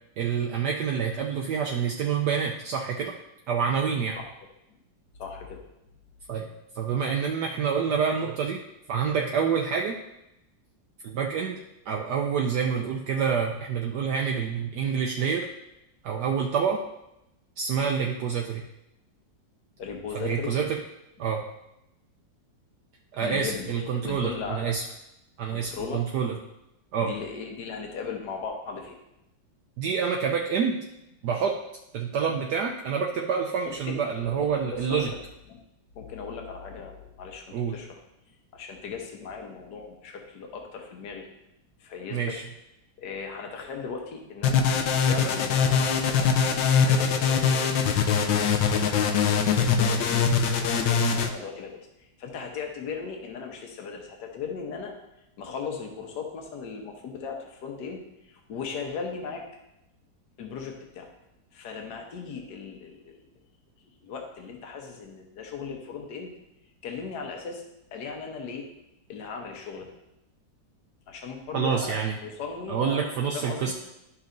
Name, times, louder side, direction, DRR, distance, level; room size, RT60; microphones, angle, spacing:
voice 1, 0.2-3.1 3.5-4.2 6.3-6.5 6.7-8.6 8.9-10.0 11.0-11.6 11.9-15.5 16.0-16.8 17.6-18.6 20.1-20.8 21.2-21.4 23.1-24.8 25.4-26.3 26.9-27.1 29.8-30.8 31.2-31.6 31.9-35.1 37.5-37.7 42.1-42.4 71.5-72.2 72.7-73.7, right 6 dB, 70° right, 1 dB, 1.1 m, -27 dB
voice 2, 5.2-5.6 17.8-17.9 19.8-20.6 23.2-24.7 25.5-26.0 27.0-29.0 33.7-35.2 35.5-35.6 36.0-38.0 38.5-41.3 41.8-42.4 43.0-44.7 45.0-50.2 50.6-54.9 55.4-59.5 60.4-61.1 61.5-63.3 64.0-66.3 66.8-67.6 67.9-68.7 69.1-69.9 71.1-71.9 72.2-73.7, left 5 dB, 65° left, 2 dB, 1.6 m, -37 dB
sound 1, 44.4-51.3, left 6 dB, 85° left, 1.4 m, -23 dB
12.5 x 5.5 x 2.6 m, 0.88 s
omnidirectional pair, 2.0 m